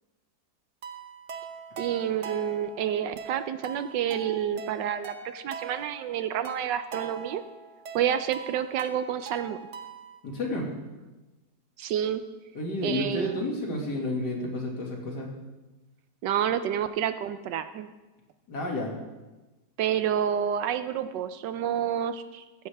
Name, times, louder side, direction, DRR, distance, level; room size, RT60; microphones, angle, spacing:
sound 1, 0.8-10.2, right 5 dB, 50° right, 0.9 m, -42 dB
voice 1, 1.8-7.4 7.9-9.6 11.8-12.2 12.8-13.5 16.2-17.9 19.8-22.7, right 9 dB, 75° right, 11 dB, 1.2 m, -29 dB
voice 2, 10.2-10.7 12.5-15.3 18.5-18.9, left 1 dB, 60° left, -1 dB, 2.7 m, -31 dB
15.5 x 10.5 x 3.4 m, 1.1 s
omnidirectional pair, 2.0 m